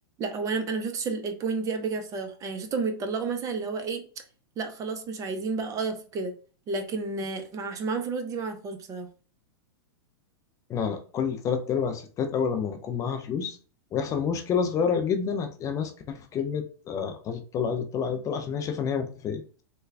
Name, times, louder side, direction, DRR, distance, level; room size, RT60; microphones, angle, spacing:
voice 1, 0.2-4.1 4.6-6.3 6.7-9.1, right 4 dB, 25° right, 7 dB, 0.5 m, -31 dB
voice 2, 10.7-13.6 13.9-19.6, left 6 dB, 25° left, 6 dB, 0.4 m, -29 dB
3.4 x 2.2 x 3.2 m, 0.40 s
hypercardioid pair, 125°, 13 cm